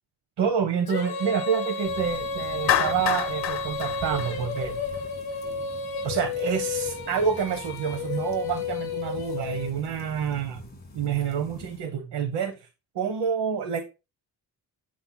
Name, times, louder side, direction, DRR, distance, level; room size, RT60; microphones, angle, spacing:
voice 1, 0.4-4.8 6.0-10.6 10.9-12.7 12.9-13.8, right 7 dB, 90° right, 1.0 m, -28 dB
Female singing, 0.9-10.0, left 5 dB, 60° left, 1.5 m, -32 dB
sound 1, 1.8-11.8, left 2 dB, 25° left, 2.1 m, -45 dB
Clapping, 2.7-5.0, left 11 dB, 75° left, 1.0 m, -27 dB
8.7 x 7.4 x 2.2 m
wide cardioid pair, 120°, 41 cm